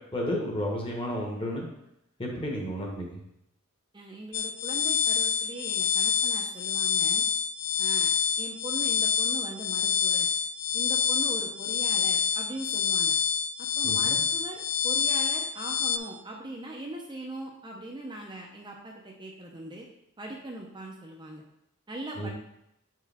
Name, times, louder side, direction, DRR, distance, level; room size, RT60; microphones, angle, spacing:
voice 1, 0.1-1.6 2.2-3.2 13.8-14.2 22.2-22.3, equal, 25° left, -1 dB, 1.2 m, -32 dB
voice 2, 3.9-7.2 7.8-8.1 8.4-10.3 10.7-13.2 13.6-19.9 20.2-21.4 21.9-22.3, right 1 dB, 20° right, 0 dB, 0.6 m, -40 dB
sound 1, 4.3-16.0, left 7 dB, 75° left, 0.4 m, -27 dB
6.8 x 4.6 x 3.5 m, 0.81 s
head